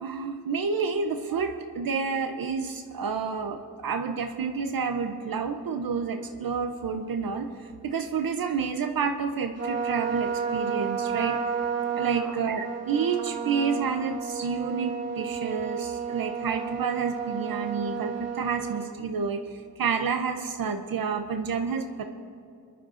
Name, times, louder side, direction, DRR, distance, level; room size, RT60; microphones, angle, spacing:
voice 1, 0.0-11.4 11.9-22.0, right 5 dB, 80° right, 7 dB, 0.6 m, -29 dB
Trumpet, 9.6-18.9, right 6 dB, 45° right, 1.6 m, -31 dB
25.0 x 11.0 x 2.5 m, 2.5 s
wide cardioid pair, 85°, 35 cm